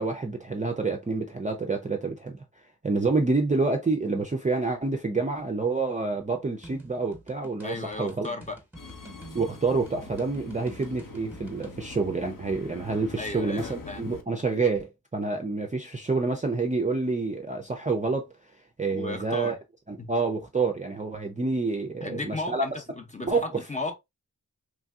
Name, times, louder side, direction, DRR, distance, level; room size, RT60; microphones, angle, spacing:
voice 1, 0.0-8.3 9.3-19.6 19.9-22.7 23.2-23.6, right 3 dB, 20° right, 0.4 m, -28 dB
sound 1, 6.6-11.8, right 2 dB, 5° right, 0.9 m, -48 dB
voice 2, 7.6-8.6 13.2-14.2 18.9-19.6 20.0-20.1 22.0-23.9, left 2 dB, 20° left, 0.6 m, -35 dB
Subway metro underground, 8.8-14.2, left 3 dB, 60° left, 0.6 m, -43 dB
3.2 x 2.6 x 2.2 m
wide cardioid pair, 90°, 37 cm